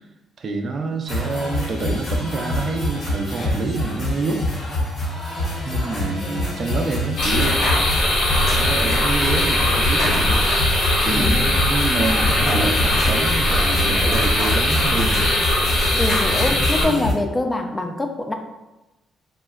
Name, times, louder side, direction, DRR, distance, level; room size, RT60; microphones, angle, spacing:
voice 1, 0.4-4.5 5.6-7.7 8.3-10.4 11.0-15.3, right 3 dB, 50° right, 4 dB, 0.4 m, -27 dB
sound 1, 1.1-17.1, left 1 dB, 55° left, 0.8 m, -26 dB
sound 2, 7.2-16.9, left 1 dB, 80° left, 1.0 m, -20 dB
voice 2, 11.1-11.6 16.0-18.3, left 2 dB, 15° left, 4 dB, 0.4 m, -24 dB
3.5 x 2.1 x 2.3 m, 1.0 s
cardioid pair, 90°, 0 cm